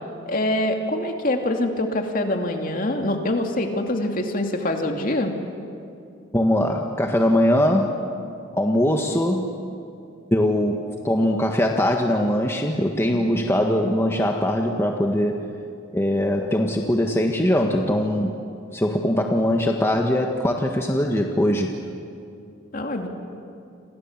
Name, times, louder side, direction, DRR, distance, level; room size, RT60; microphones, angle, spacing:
voice 1, 0.3-5.3 13.1-13.5 22.7-23.1, left 1 dB, 45° left, 3 dB, 2.7 m, -25 dB
voice 2, 6.3-8.0 8.5-9.6 10.3-15.4 15.9-18.4 18.7-21.8, left 1 dB, 15° left, 2 dB, 1.5 m, -21 dB
29.5 x 27.0 x 7.4 m, 2.5 s
head